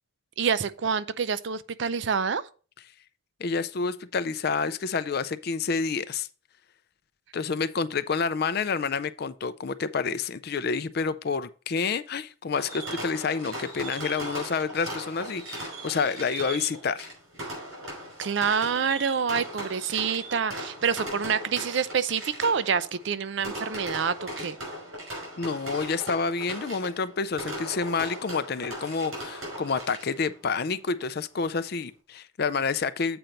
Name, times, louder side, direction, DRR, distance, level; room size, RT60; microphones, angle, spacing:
voice 1, 0.4-2.4 18.2-24.6, right 6 dB, 55° right, 0.4 m, -27 dB
voice 2, 3.4-6.3 7.3-17.1 25.4-33.2, left 5 dB, 50° left, 0.4 m, -29 dB
Fireworks, 12.6-30.3, right 1 dB, 80° right, 4.9 m, -38 dB
7.9 x 4.4 x 5.2 m
head